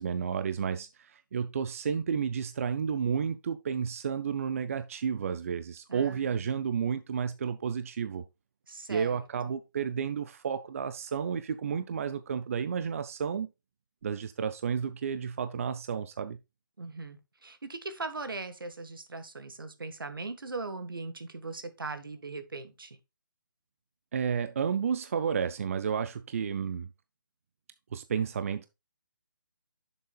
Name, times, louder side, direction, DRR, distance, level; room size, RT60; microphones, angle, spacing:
voice 1, 0.0-8.2 8.9-13.5 14.0-16.4 24.1-26.9 27.9-28.7, right 7 dB, 40° right, 0.5 m, -31 dB
voice 2, 5.9-6.3 8.7-9.2 16.8-23.0, right 3 dB, 80° right, 1.5 m, -39 dB
10.5 x 6.9 x 2.3 m
figure-of-eight pair, 155°, 11 cm